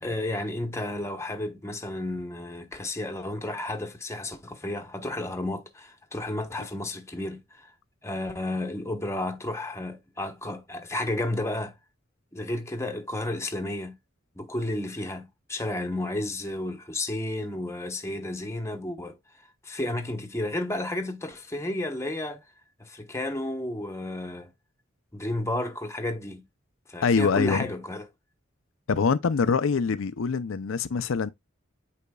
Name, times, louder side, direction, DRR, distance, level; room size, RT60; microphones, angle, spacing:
voice 1, 0.0-7.7 8.0-11.7 12.3-14.0 14.3-19.2 19.6-22.4 22.8-24.5 25.1-26.4 26.9-28.1, left 1 dB, 15° left, 1.0 m, -32 dB
voice 2, 27.0-27.7 28.9-31.3, left 5 dB, 85° left, 0.5 m, -24 dB
8.4 x 5.0 x 2.3 m
head